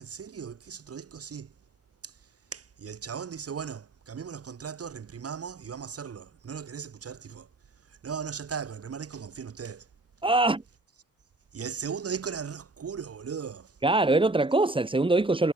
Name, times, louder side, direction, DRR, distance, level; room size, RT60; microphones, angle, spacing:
voice 1, 0.0-1.5 2.0-7.5 7.9-9.9 11.5-13.8, right 7 dB, 40° right, 6.3 m, -38 dB
voice 2, 10.2-10.6 13.8-15.5, right 2 dB, 15° right, 2.4 m, -23 dB
cardioid pair, 100°, 35 cm